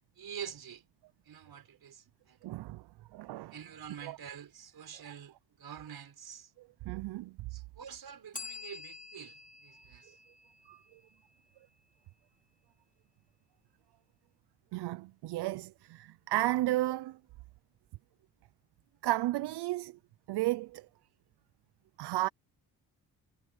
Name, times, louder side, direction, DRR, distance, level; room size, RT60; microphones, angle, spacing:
voice 1, 0.2-0.8 1.3-2.4 3.5-6.5 7.5-10.1, right 8 dB, 65° right, 5.6 m, -47 dB
voice 2, 2.4-2.8 3.1-3.5 4.0-4.2 6.9-7.4 10.7-10.8 14.7-17.2 19.0-20.0 20.3-20.9 22.0-22.3, right 17 dB, 85° right, 0.6 m, -33 dB
Bell, 8.3-11.2, left 4 dB, 20° left, 4.1 m, -48 dB
cardioid pair, 65°, 39 cm